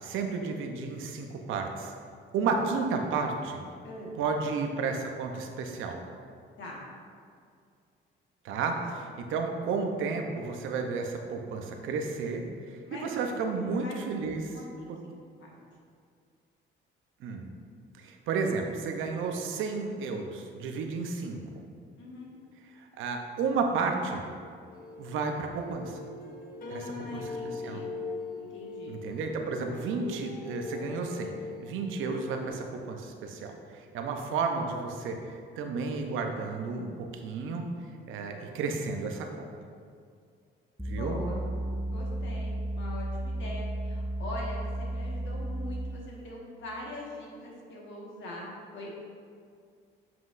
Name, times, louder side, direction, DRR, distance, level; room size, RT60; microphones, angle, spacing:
voice 1, 0.0-1.9 2.3-3.6 4.2-6.0 8.4-14.6 14.9-15.0 17.2-17.5 18.0-21.6 22.8-24.2 25.0-26.0 26.7-27.9 28.9-31.3 31.6-35.2 35.6-37.6 38.1-39.3 40.8-41.2, right 4 dB, 85° right, 3 dB, 0.7 m, -32 dB
voice 2, 3.8-4.2 6.6-6.8 12.9-13.2 13.8-14.0 14.5-14.9 15.4-15.6 22.0-22.3 26.6-27.9 28.4-29.0 40.9-41.5 41.9-49.0, left 1 dB, 70° left, -3 dB, 1.6 m, -42 dB
sound 1, 24.6-32.5, left 3 dB, 45° left, 1.0 m, -41 dB
sound 2, 40.8-46.1, right 1 dB, ahead, 0.4 m, -33 dB
7.5 x 5.9 x 2.6 m, 2.3 s
cardioid pair, 90°, 20 cm